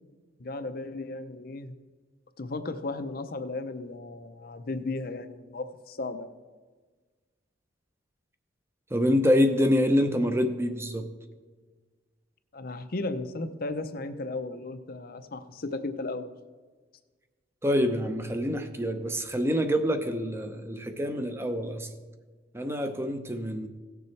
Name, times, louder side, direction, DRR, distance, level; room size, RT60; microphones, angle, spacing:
voice 1, 0.4-1.8 2.4-6.3 12.5-16.3, left 2 dB, 50° left, 10 dB, 0.6 m, -35 dB
voice 2, 8.9-11.1 17.6-21.9 22.5-23.7, equal, 15° right, 8 dB, 0.7 m, -26 dB
17.5 x 6.9 x 3.3 m, 1.4 s
head